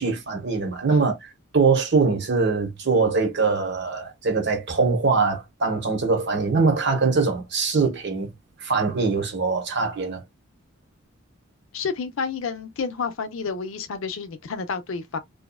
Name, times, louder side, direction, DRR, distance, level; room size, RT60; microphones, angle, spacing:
voice 1, 0.0-8.3 8.6-10.2, right 4 dB, 55° right, 0.9 m, -22 dB
voice 2, 11.7-15.2, left 5 dB, 65° left, 0.5 m, -30 dB
2.7 x 2.3 x 2.2 m
head